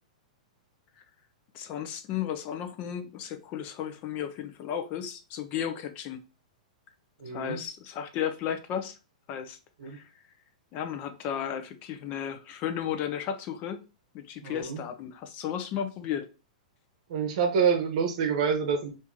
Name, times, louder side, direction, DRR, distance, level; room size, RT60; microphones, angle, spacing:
voice 1, 1.5-6.2 7.3-9.0 9.3-9.6 9.8-10.1 10.7-13.8 14.1-16.3, left 9 dB, 35° left, 0.6 m, -34 dB
voice 2, 7.2-7.6 9.8-10.0 14.4-14.8 17.1-18.9, right 6 dB, 60° right, 0.9 m, -27 dB
2.9 x 2.7 x 3.7 m
hypercardioid pair, 135°, 4 cm